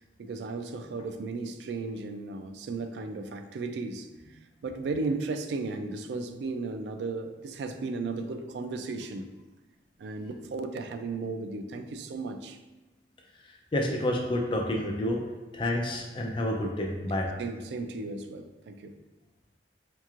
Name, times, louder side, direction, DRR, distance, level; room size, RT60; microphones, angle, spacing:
voice 1, 0.2-9.3 10.0-12.6 17.4-19.0, right 3 dB, 70° right, 7 dB, 0.3 m, -35 dB
voice 2, 13.7-15.2 15.5-17.3, left 1 dB, 30° left, 1 dB, 0.4 m, -29 dB
4.4 x 2.9 x 2.4 m, 1.1 s
head